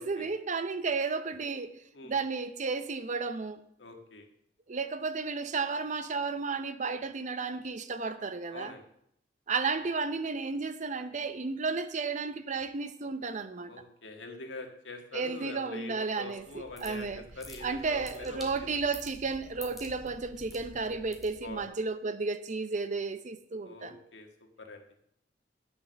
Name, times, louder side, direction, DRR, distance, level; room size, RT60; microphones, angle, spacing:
voice 1, 0.0-1.7 2.0-3.6 4.7-8.7 9.5-13.7 15.1-17.2 17.6-24.0, right 4 dB, 45° right, 0.7 m, -33 dB
voice 2, 3.8-4.3 8.5-8.8 13.7-18.5 21.4-21.6 23.6-24.3 24.6-24.8, left 2 dB, 85° left, 1.7 m, -44 dB
sound 1, 16.3-21.7, equal, ahead, 2.2 m, -49 dB
9.6 x 7.0 x 6.4 m
head